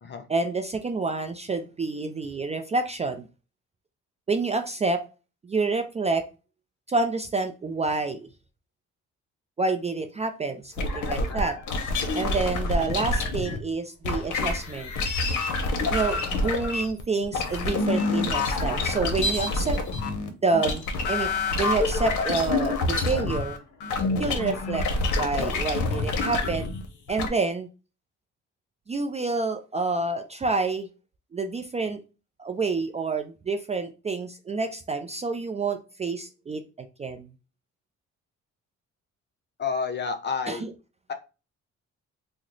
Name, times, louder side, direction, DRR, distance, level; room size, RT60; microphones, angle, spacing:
voice 1, 0.3-3.3 4.3-5.1 5.4-6.3 6.9-8.3 9.6-11.6 12.1-14.9 15.9-19.8 20.4-21.3 21.6-23.6 24.2-24.9 25.2-26.7 27.1-27.7 28.9-30.9 31.3-32.0 32.4-37.3 40.5-40.7, right 3 dB, 25° right, 6 dB, 0.3 m, -28 dB
sound 1, 10.8-13.6 14.0-27.3, left 3 dB, 75° left, 0.7 m, -27 dB
voice 2, 39.6-40.6 41.1-41.2, left 5 dB, 35° left, 8 dB, 0.6 m, -30 dB
3.0 x 2.0 x 3.8 m, 0.32 s
cardioid pair, 90°, 30 cm